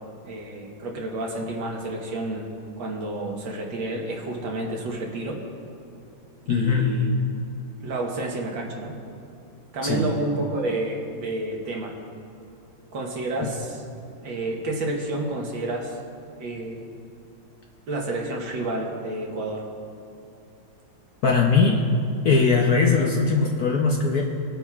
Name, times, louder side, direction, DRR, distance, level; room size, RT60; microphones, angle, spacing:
voice 1, 0.2-5.4 6.5-7.1 7.8-8.9 9.7-11.9 12.9-13.8 14.2-16.0 16.4-16.9 17.9-19.6, right 2 dB, 70° right, 0 dB, 1.9 m, -30 dB
voice 2, 6.5-6.9 9.8-10.1 21.2-21.8 22.2-24.2, left 4 dB, 65° left, 0 dB, 1.0 m, -20 dB
21.0 x 8.7 x 2.4 m, 2.6 s
omnidirectional pair, 2.2 m